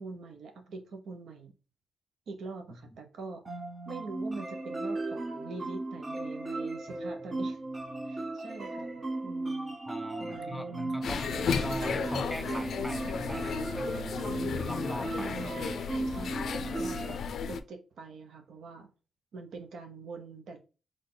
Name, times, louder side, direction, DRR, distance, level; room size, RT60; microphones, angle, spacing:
voice 1, 0.0-1.5 2.3-3.4 3.9-7.6 8.1-9.8 10.2-10.9 15.2-17.2 17.5-18.9 19.3-20.6, right 3 dB, 80° right, 0.9 m, -44 dB
sound 1, 3.4-17.2, right 2 dB, 25° right, 0.8 m, -36 dB
voice 2, 9.9-14.2 14.5-15.3 16.1-16.3 16.6-16.7, equal, ahead, 0.4 m, -41 dB
sound 2, 11.0-17.6, left 6 dB, 75° left, 0.4 m, -34 dB
3.9 x 3.4 x 3.8 m
wide cardioid pair, 150°, 0 cm